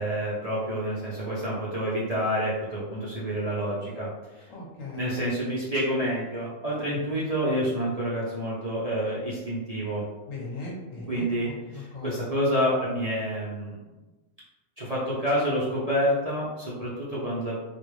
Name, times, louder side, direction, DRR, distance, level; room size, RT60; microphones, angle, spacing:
voice 1, 0.0-4.1 4.9-10.0 11.1-11.5 11.7-13.8 14.8-17.6, equal, 40° right, -8 dB, 0.5 m, -28 dB
voice 2, 4.5-5.1 10.3-12.3, left 2 dB, 70° left, -3 dB, 1.2 m, -38 dB
3.4 x 2.4 x 3.2 m, 1.1 s
omnidirectional pair, 1.4 m